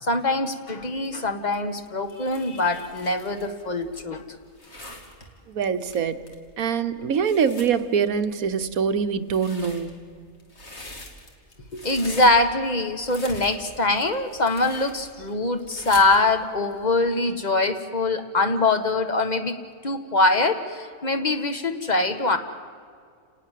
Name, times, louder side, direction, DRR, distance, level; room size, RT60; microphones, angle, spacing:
voice 1, 0.0-4.2 11.7-19.6 19.8-22.4, left 2 dB, 30° left, 7 dB, 1.6 m, -23 dB
sound 1, 0.7-16.9, left 1 dB, 45° left, 3.1 m, -44 dB
voice 2, 5.5-6.3 6.6-10.0, right 6 dB, 70° right, 9 dB, 1.4 m, -24 dB
29.5 x 19.0 x 7.6 m, 2.2 s
omnidirectional pair, 1.6 m